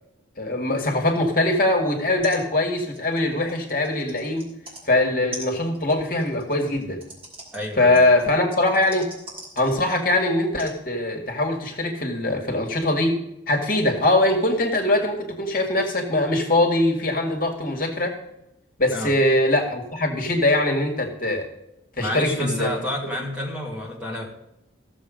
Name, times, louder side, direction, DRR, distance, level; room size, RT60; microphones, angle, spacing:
voice 1, 0.4-4.5 4.9-7.0 7.8-9.1 9.6-13.2 13.5-18.1 18.8-21.5 22.0-22.7, left 1 dB, 45° left, 3 dB, 2.1 m, -22 dB
sound 1, 1.9-2.0 2.2-2.4 2.7-4.8 5.3-10.1 10.6-10.8 11.6-11.7, right 2 dB, 30° right, 3.4 m, -42 dB
voice 2, 7.5-8.0 18.9-19.1 22.0-24.2, left 1 dB, 5° right, -3 dB, 2.3 m, -29 dB
14.5 x 7.5 x 5.2 m, 0.85 s
head